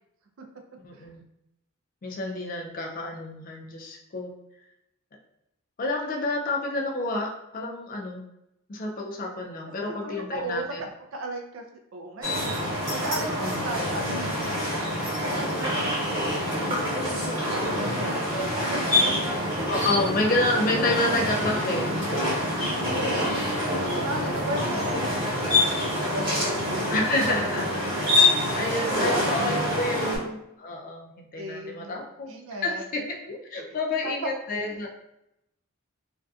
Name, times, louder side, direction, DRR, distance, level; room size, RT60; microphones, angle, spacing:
voice 1, 0.8-1.2 2.0-4.3 5.8-8.3 8.7-10.8 13.4-13.6 19.7-21.9 26.9-28.2 28.5-32.3 32.6-34.9, left 2 dB, 40° left, 0 dB, 0.4 m, -29 dB
voice 2, 10.0-11.6 11.9-17.2 17.5-18.8 19.5-19.7 22.9-26.2 26.7-26.8 28.6-30.0 31.4-32.0 32.2-32.8 33.7-34.3 34.6-34.8, right 2 dB, 65° right, 3 dB, 0.4 m, -36 dB
sound 1, 12.2-30.2, left 1 dB, 20° right, 1.0 m, -26 dB
2.6 x 2.2 x 2.3 m, 0.84 s
head